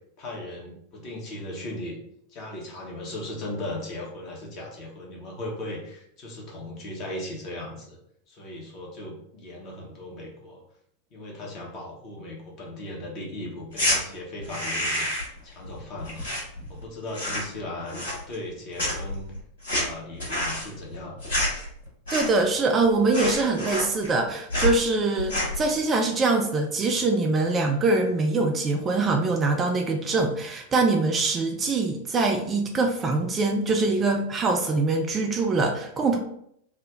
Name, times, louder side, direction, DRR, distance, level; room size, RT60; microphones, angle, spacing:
voice 1, 0.2-2.0 2.3-8.0 8.3-10.6 11.1-15.1 15.4-16.3 16.7-19.2 19.7-21.2, left 1 dB, 40° left, -2 dB, 1.1 m, -37 dB
sound 1, 13.7-14.0 14.4-15.4 15.6-16.8 17.1-17.6 17.9-18.5 18.8-22.5 22.8-22.9 23.1-24.2 24.5-24.8 25.2-25.6, left 1 dB, 65° left, 1.5 m, -28 dB
voice 2, 22.1-36.2, right 3 dB, 20° right, 3 dB, 0.4 m, -23 dB
3.4 x 2.2 x 3.6 m, 0.71 s
figure-of-eight pair, 90°, 0 cm